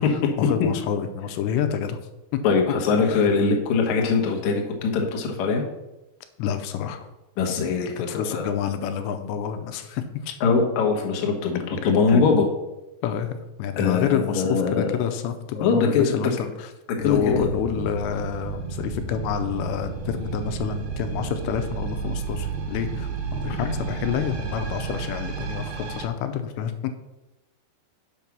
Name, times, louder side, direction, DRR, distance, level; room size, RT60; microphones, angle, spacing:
voice 1, 0.4-2.0 2.3-2.4 3.0-3.3 6.4-7.1 8.1-10.4 12.1-12.2 13.0-13.3 13.6-16.7 17.0-26.7, left 8 dB, 85° left, 8 dB, 2.9 m, -28 dB
voice 2, 2.4-5.6 7.4-8.5 10.4-12.5 13.8-15.0 15.6-16.3 16.9-17.5 23.6-23.7, left 5 dB, 65° left, 2 dB, 1.9 m, -22 dB
sound 1, 17.0-26.1, right 5 dB, 70° right, 2.9 m, -32 dB
7.4 x 5.4 x 6.0 m, 0.95 s
omnidirectional pair, 5.0 m